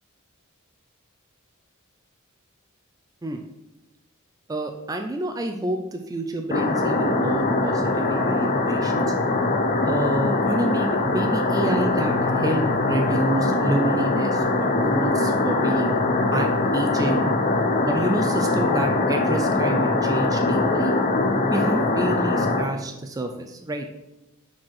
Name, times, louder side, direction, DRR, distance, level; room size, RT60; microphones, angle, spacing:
voice 1, 4.5-9.1 9.8-17.3 17.9-21.0 21.5-23.9, right 1 dB, 15° right, 4 dB, 0.4 m, -28 dB
sound 1, 6.5-22.6, left 2 dB, 35° left, 0.7 m, -22 dB
5.1 x 4.3 x 5.5 m, 0.97 s
head